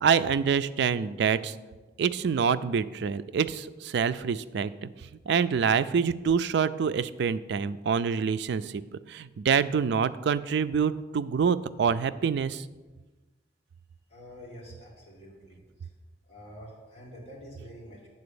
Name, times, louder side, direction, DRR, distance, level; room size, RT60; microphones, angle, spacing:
voice 1, 0.0-1.5 2.0-4.9 5.3-8.8 9.1-12.6, right 6 dB, 65° right, 14 dB, 0.3 m, -26 dB
voice 2, 14.1-15.6 16.3-18.1, equal, 35° left, -3 dB, 2.1 m, -47 dB
8.6 x 4.0 x 6.9 m, 1.2 s
head